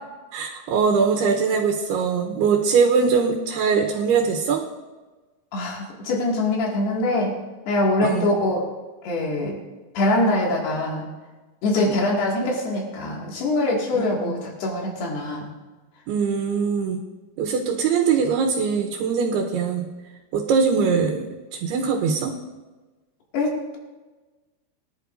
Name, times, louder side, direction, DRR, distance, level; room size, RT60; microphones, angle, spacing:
voice 1, 0.3-4.6 8.0-8.3 11.7-12.0 13.9-14.4 16.1-17.0 17.4-19.9 20.3-21.3 21.6-22.3, right 5 dB, 85° right, 0 dB, 3.1 m, -22 dB
voice 2, 5.5-7.4 7.7-8.7 9.0-9.6 9.9-11.1 11.6-15.5 23.3-23.8, left 2 dB, 85° left, -2 dB, 4.3 m, -23 dB
23.0 x 11.0 x 2.6 m, 1.2 s
omnidirectional pair, 4.5 m